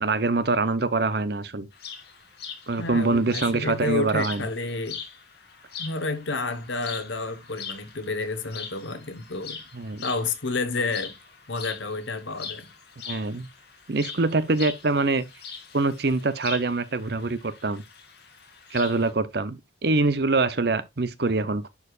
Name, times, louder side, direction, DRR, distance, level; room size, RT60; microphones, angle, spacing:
voice 1, 0.0-1.7 2.7-4.4 9.7-10.0 13.1-13.5 13.9-15.2 15.7-17.8 18.7-21.7, right 3 dB, 55° right, 0.8 m, -24 dB
sound 1, 1.7-19.1, left 7 dB, 55° left, 2.5 m, -42 dB
voice 2, 2.8-5.0 5.8-9.6 10.0-11.1 11.5-12.6, left 3 dB, 75° left, 1.3 m, -30 dB
11.0 x 4.9 x 2.5 m
head